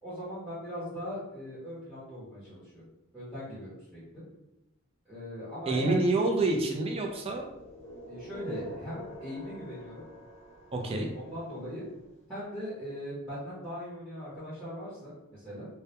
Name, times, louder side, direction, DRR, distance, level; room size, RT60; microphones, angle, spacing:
voice 1, 0.0-2.8 3.1-4.2 5.1-6.3 8.1-10.0 11.1-11.8 12.3-15.7, equal, 5° right, -12 dB, 0.8 m, -39 dB
voice 2, 5.7-7.5 10.7-11.1, right 2 dB, 25° right, 2 dB, 0.3 m, -27 dB
sound 1, 6.9-11.9, equal, 35° left, 0.8 m, -47 dB
2.2 x 2.0 x 2.8 m, 0.93 s
head